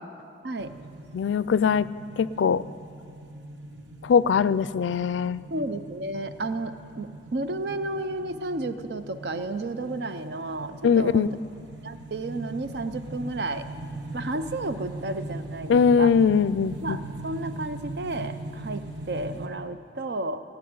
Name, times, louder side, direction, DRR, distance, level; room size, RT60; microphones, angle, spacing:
sound 1, 0.6-19.5, right 2 dB, 90° right, 1.2 m, -40 dB
voice 1, 1.1-1.9 2.2-2.6 4.0-5.4 10.8-11.3 15.7-17.0, left 6 dB, 85° left, 18 dB, 0.3 m, -21 dB
voice 2, 5.5-11.3 11.8-13.6 14.1-16.1 16.8-20.4, right 2 dB, 65° right, 10 dB, 0.6 m, -32 dB
17.0 x 5.9 x 9.4 m, 2.4 s
head